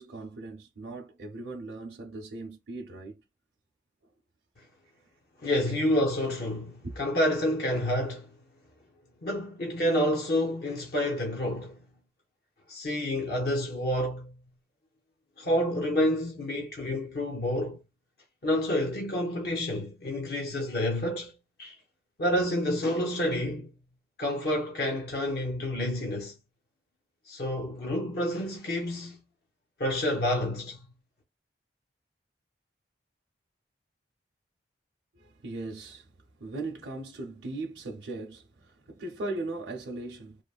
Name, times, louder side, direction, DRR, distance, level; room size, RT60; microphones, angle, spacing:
voice 1, 0.0-3.2 5.6-5.7 6.8-6.9 35.1-36.1 36.4-40.4, right 2 dB, 70° right, 0.6 m, -38 dB
voice 2, 5.4-8.3 9.2-11.8 12.7-14.3 15.4-17.8 18.4-21.3 21.6-21.8 22.2-23.7 24.2-26.3 27.3-29.2 29.8-30.8, left 1 dB, 55° left, 0.7 m, -28 dB
3.0 x 2.1 x 2.3 m
head